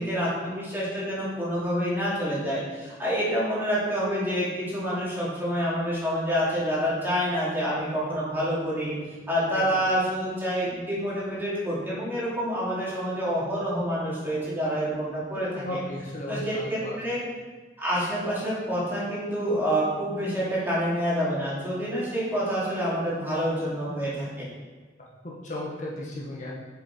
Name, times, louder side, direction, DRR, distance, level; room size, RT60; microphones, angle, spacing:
voice 1, 0.0-8.9 9.3-15.8 16.3-17.2 17.8-24.5, equal, 10° right, -8 dB, 2.7 m, -27 dB
voice 2, 9.5-9.8 15.3-17.0 25.2-26.5, left 1 dB, 45° left, -5 dB, 1.4 m, -35 dB
7.4 x 6.5 x 4.4 m, 1.3 s
head